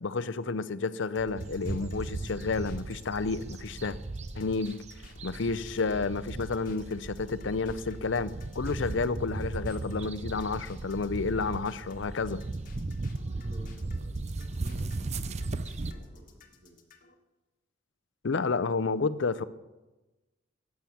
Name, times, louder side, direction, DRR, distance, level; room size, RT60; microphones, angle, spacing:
voice 1, 0.0-4.0 4.3-4.8 5.2-12.4 18.2-19.4, left 4 dB, 65° left, 14 dB, 0.6 m, -30 dB
sound 1, 1.2-17.1, left 2 dB, 45° left, 1.5 m, -53 dB
sound 2, 1.4-15.9, right 2 dB, 35° right, 0.5 m, -37 dB
voice 2, 13.2-16.8, equal, 65° right, -2 dB, 4.5 m, -54 dB
13.5 x 8.6 x 7.2 m, 1.1 s
head